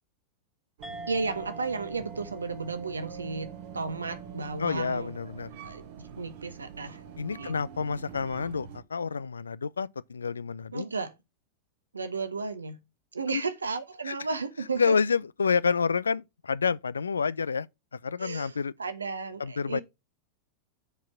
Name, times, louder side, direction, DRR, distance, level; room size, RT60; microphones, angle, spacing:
sound 1, 0.8-5.7, right 1 dB, 10° right, 1.2 m, -47 dB
sound 2, 0.8-8.8, right 7 dB, 50° right, 1.1 m, -44 dB
voice 1, 1.1-5.1 5.6-7.0 7.4-7.5 10.7-11.2 11.9-12.8 13.1-15.0 18.2-19.8, right 4 dB, 75° right, 1.0 m, -34 dB
voice 2, 4.6-5.5 7.2-10.9 13.3-13.4 14.1-14.2 14.8-17.7 18.0-18.7 19.4-19.8, left 5 dB, 75° left, 0.3 m, -28 dB
7.0 x 4.5 x 5.7 m
figure-of-eight pair, 90°, 0 cm